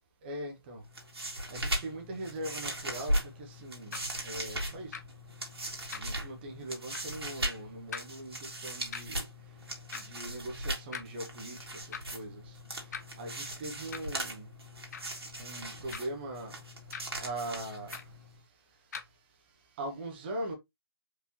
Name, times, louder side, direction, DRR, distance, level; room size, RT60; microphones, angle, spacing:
voice 1, 0.2-0.8 1.5-4.0 4.2-5.0 5.9-9.2 9.7-14.5 15.4-16.6 17.2-18.1 19.8-20.5, right 1 dB, 25° right, 1.2 m, -41 dB
sound 1, 0.8-18.4, right 1 dB, 75° right, 2.1 m, -38 dB
sound 2, 3.9-4.1 4.9-5.0 5.9-6.2 6.9-7.1 7.9-8.1 8.9-9.0 9.9-10.0 10.9-11.1 11.9-12.1 12.9-13.0 13.9-14.1 14.9-15.1 15.9-16.2 16.9-17.0 17.9-18.1 18.9-19.1, left 6 dB, 40° left, 0.6 m, -41 dB
4.8 x 3.4 x 2.8 m
figure-of-eight pair, 150°, 13 cm